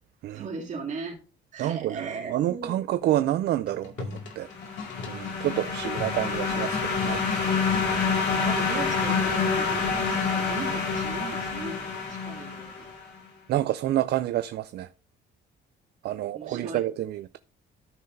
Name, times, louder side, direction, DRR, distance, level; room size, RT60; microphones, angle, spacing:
voice 1, 0.3-1.2 1.5-3.3 5.2-5.5 8.3-11.8 12.1-12.9 16.3-16.9, right 4 dB, 40° right, 2.7 m, -38 dB
voice 2, 1.6-4.5 5.1-7.2 7.6-7.7 13.5-14.9 16.0-17.4, right 13 dB, 60° right, 0.4 m, -28 dB
sound 1, 3.6-7.9 9.1-9.5, left 5 dB, 80° left, 2.3 m, -39 dB
sound 2, 4.4-13.0, left 5 dB, 60° left, 3.4 m, -27 dB
13.5 x 5.7 x 2.7 m
cardioid pair, 165°, 19 cm